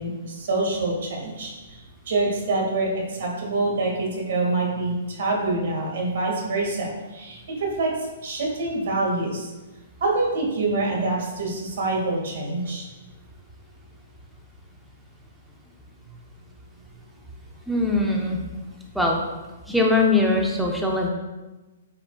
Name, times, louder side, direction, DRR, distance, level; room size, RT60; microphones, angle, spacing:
voice 1, 0.0-7.9 8.2-9.5 10.0-12.9, right 2 dB, 60° right, -1 dB, 2.0 m, -26 dB
voice 2, 17.7-18.4 18.9-19.2 19.7-21.1, left 2 dB, ahead, -2 dB, 1.0 m, -21 dB
8.6 x 4.9 x 2.4 m, 1.1 s
hypercardioid pair, 130°, 0 cm